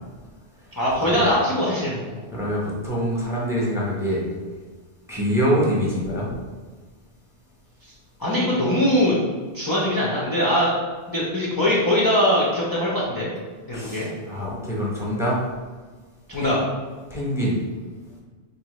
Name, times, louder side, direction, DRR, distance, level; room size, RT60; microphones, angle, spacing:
voice 1, 0.8-2.2 7.8-7.9 8.2-9.2 9.5-10.7 11.1-13.3 13.7-14.1 16.3-16.6, left 1 dB, 25° left, -6 dB, 0.5 m, -22 dB
voice 2, 2.3-4.2 5.1-6.3 13.7-15.4 16.3-16.6 17.1-17.6, equal, 5° right, -5 dB, 0.8 m, -25 dB
4.5 x 2.7 x 3.0 m, 1.4 s
omnidirectional pair, 1.2 m